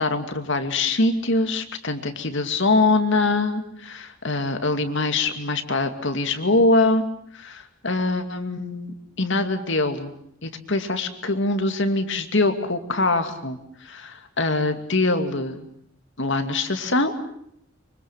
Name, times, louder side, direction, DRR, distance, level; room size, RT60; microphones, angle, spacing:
voice 1, 0.0-7.0 7.3-10.1 10.4-15.7 16.2-17.1, left 2 dB, 65° left, 7 dB, 2.5 m, -23 dB
25.0 x 25.0 x 7.4 m, 0.71 s
head